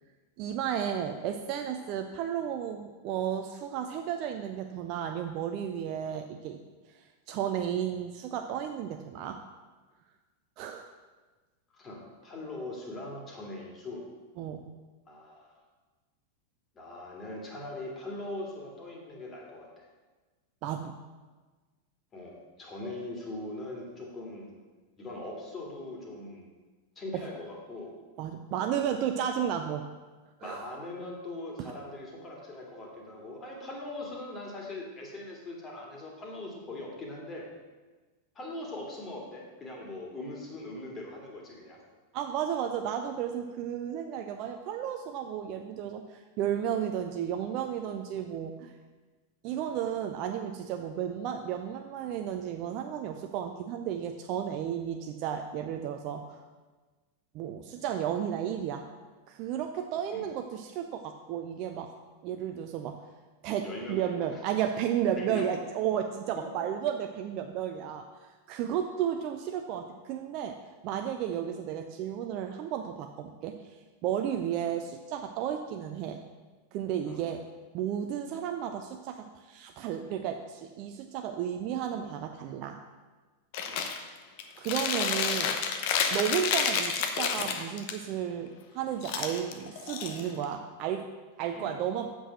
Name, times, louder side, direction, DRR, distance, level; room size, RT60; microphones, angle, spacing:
voice 1, 0.4-6.6 6.9-9.4 10.6-10.9 14.4-14.7 20.6-20.9 27.1-27.2 28.2-29.8 30.4-30.6 42.1-48.7 49.4-56.4 57.3-58.8 59.3-61.9 62.2-63.0 63.4-70.6 70.8-76.2 76.7-77.4 77.7-82.8 84.6-85.5 86.1-91.1 91.4-92.1, right 9 dB, 40° right, 5 dB, 0.5 m, -33 dB
voice 2, 11.7-14.0 15.1-15.5 16.7-19.9 22.1-24.5 25.0-26.5 27.0-27.9 30.4-37.4 38.3-41.8 60.1-60.2 63.6-64.1 65.2-65.5 66.4-66.5 77.1-77.2 83.7-83.9 91.5-91.8, left 2 dB, 25° left, -1 dB, 2.3 m, -41 dB
Chewing mastication, 83.5-84.0 84.4-87.9 89.0-90.5, left 6 dB, 50° left, 0.9 m, -30 dB
7.8 x 6.3 x 6.2 m, 1.3 s
figure-of-eight pair, 90°, 0 cm